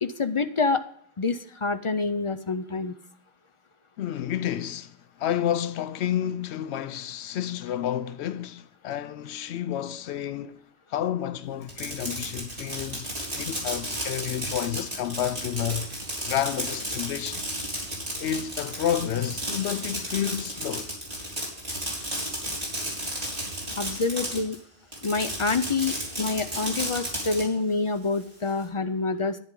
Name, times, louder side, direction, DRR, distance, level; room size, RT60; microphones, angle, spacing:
voice 1, 0.0-0.8 1.2-2.9 23.8-24.6 25.0-29.4, left 4 dB, 45° left, 0.4 m, -27 dB
voice 2, 4.0-10.6 10.9-13.1 13.3-15.9 16.3-17.5 17.7-17.9 18.2-20.9, left 10 dB, 85° left, 0.9 m, -30 dB
Fireworks, 11.6-24.6 24.9-27.4, right 1 dB, 35° right, 3.7 m, -33 dB
11.0 x 9.5 x 3.7 m
omnidirectional pair, 1.1 m